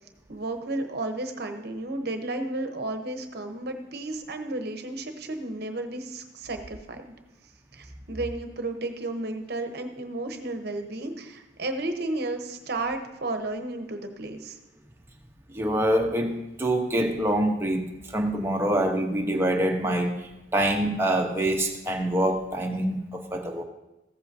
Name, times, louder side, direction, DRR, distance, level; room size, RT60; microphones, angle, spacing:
voice 1, 0.3-7.1 7.7-14.6, right 2 dB, 55° right, 6 dB, 0.9 m, -33 dB
voice 2, 15.5-23.6, right 1 dB, 15° right, 1 dB, 0.9 m, -25 dB
15.0 x 7.7 x 2.7 m, 0.94 s
head